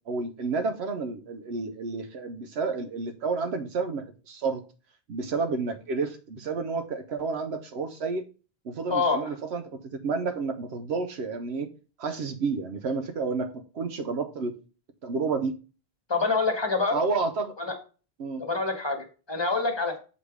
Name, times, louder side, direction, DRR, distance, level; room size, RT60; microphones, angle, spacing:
voice 1, 0.1-4.6 5.1-8.2 8.6-11.7 12.0-14.5 15.0-15.6 16.9-17.6 18.2-18.4, right 4 dB, 80° right, 7 dB, 1.0 m, -30 dB
voice 2, 8.9-9.3 16.1-17.0 17.6-17.7 18.4-20.0, left 3 dB, 25° left, 4 dB, 1.2 m, -26 dB
7.2 x 3.3 x 4.8 m, 0.35 s
omnidirectional pair, 1.1 m